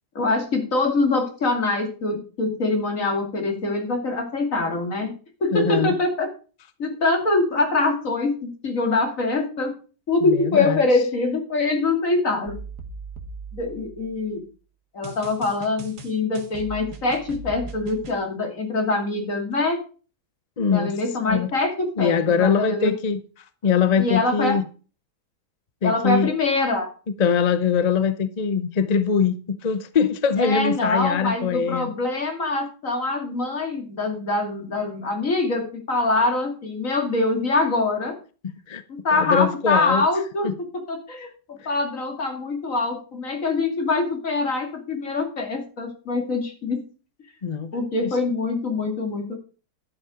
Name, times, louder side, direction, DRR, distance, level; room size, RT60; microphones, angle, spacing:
voice 1, 0.1-5.1 5.4-6.3 6.8-9.7 10.1-12.6 13.5-14.4 14.9-19.8 20.7-22.9 24.0-24.6 25.8-26.9 30.4-38.2 38.9-46.8 47.7-49.3, left 3 dB, 55° left, 3.0 m, -24 dB
voice 2, 5.5-5.9 10.2-10.8 20.6-20.9 21.2-21.5 22.0-23.2 23.6-24.6 25.8-26.4 27.2-31.9 38.7-38.8 39.1-40.0 40.4-40.5 47.4-47.7 48.0-48.1, left 6 dB, 40° left, 0.6 m, -22 dB
sound 1, 12.5-14.3 15.0-18.2, right 3 dB, 85° right, 2.1 m, -39 dB
12.0 x 7.2 x 5.0 m
omnidirectional pair, 1.7 m